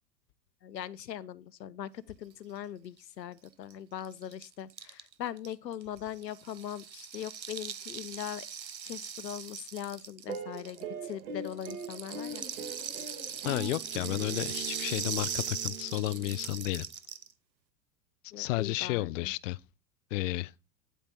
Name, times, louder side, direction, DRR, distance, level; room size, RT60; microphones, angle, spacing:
voice 1, 0.6-8.5 8.8-12.4 18.3-19.3, left 10 dB, 80° left, 0.8 m, -41 dB
Rattle (instrument), 3.4-3.5 3.7-3.8 4.0-11.1 11.4-17.3, right 7 dB, 90° right, 0.9 m, -40 dB
sound 1, 10.3-16.8, right 4 dB, 60° right, 3.7 m, -42 dB
voice 2, 13.4-16.9 18.4-19.6 20.1-20.5, left 18 dB, 50° left, 0.5 m, -32 dB
9.7 x 8.4 x 4.1 m
figure-of-eight pair, 95°, 50 cm